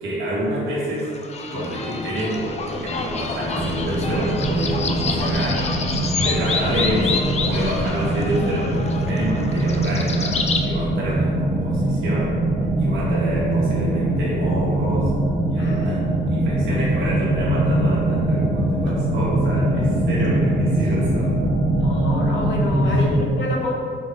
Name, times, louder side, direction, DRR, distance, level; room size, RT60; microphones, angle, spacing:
voice 1, 0.0-1.1 1.5-5.7 6.2-12.4 12.8-15.1 15.5-21.3 22.8-23.0, right 1 dB, 80° right, -7 dB, 1.1 m, -28 dB
sound 1, 1.0-10.6, left 4 dB, 35° left, 0.4 m, -28 dB
sound 2, 3.5-23.2, right 1 dB, 55° left, 1.2 m, -22 dB
voice 2, 15.6-16.4 19.8-20.1 21.8-23.7, left 1 dB, 75° left, 0 dB, 0.8 m, -30 dB
4.5 x 2.6 x 3.8 m, 2.1 s
cardioid pair, 90°, 20 cm